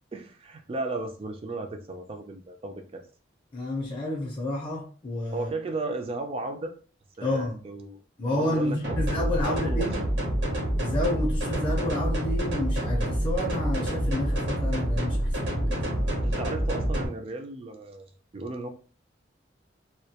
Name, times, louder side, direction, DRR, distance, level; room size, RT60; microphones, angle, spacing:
voice 1, 0.1-3.0 5.3-6.7 7.2-8.0 8.3-10.1 16.2-18.7, right 2 dB, 30° right, 0.3 m, -35 dB
voice 2, 3.5-5.5 7.2-7.6 8.2-10.0 10.8-16.3, left 1 dB, 25° left, 0.5 m, -30 dB
sound 1, 8.8-17.0, equal, 70° right, 0.8 m, -27 dB
2.2 x 2.1 x 2.7 m
head